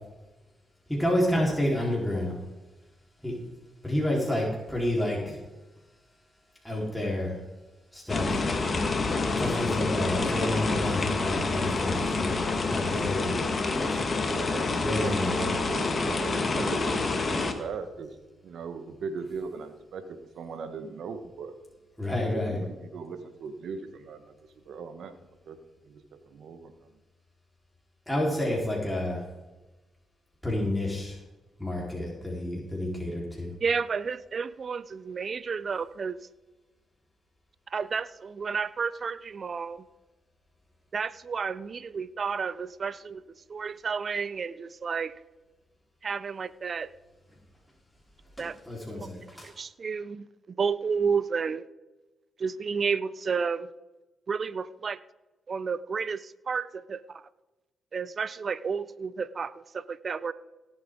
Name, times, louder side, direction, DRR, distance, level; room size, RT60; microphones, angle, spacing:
voice 1, 0.9-2.4 3.2-3.3 3.8-5.4 6.6-7.4 7.9-8.4 9.4-12.4 12.7-13.3 13.7-13.9 14.8-15.6 22.0-22.6 28.1-29.2 30.4-31.2 31.6-33.5 48.4-49.5, left 1 dB, 5° left, -4 dB, 4.2 m, -29 dB
sound 1, 8.1-17.5, left 3 dB, 45° left, 1.7 m, -28 dB
voice 2, 14.3-18.2 18.4-21.5 22.3-24.3 24.6-25.1 25.4-25.6 25.8-26.7, right 5 dB, 70° right, 8 dB, 1.4 m, -39 dB
voice 3, 33.6-36.1 37.7-39.8 40.9-43.2 43.5-45.1 46.0-46.9 48.4-48.5 48.9-49.1 49.4-50.3 50.6-51.6 52.4-53.7 54.3-55.0 55.5-56.2 56.5-57.0 57.9-60.3, right 5 dB, 50° right, 17 dB, 0.6 m, -31 dB
17.5 x 8.1 x 3.8 m, 1.1 s
supercardioid pair, 55°, 0 cm